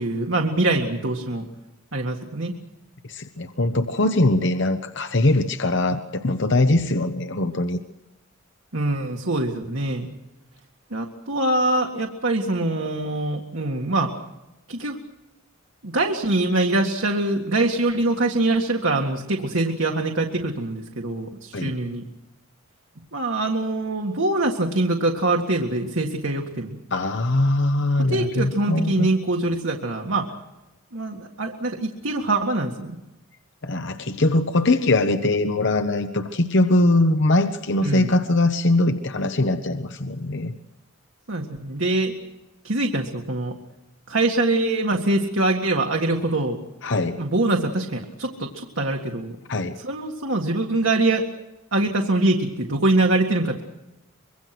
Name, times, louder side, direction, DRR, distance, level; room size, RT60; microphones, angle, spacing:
voice 1, 0.0-1.4 1.9-2.5 8.7-10.1 10.9-14.1 14.7-15.0 15.8-22.0 23.1-26.8 28.0-30.3 30.9-33.0 37.8-38.1 41.3-42.1 42.6-43.6 44.1-46.6 47.2-49.4 49.8-51.2 51.7-53.6, right 2 dB, 70° right, 1 dB, 1.9 m, -23 dB
voice 2, 3.1-7.8 21.5-21.7 26.9-29.1 33.6-40.5 46.8-47.2 49.5-49.8, left 2 dB, 60° left, 8 dB, 1.0 m, -21 dB
25.5 x 23.5 x 6.1 m, 0.97 s
head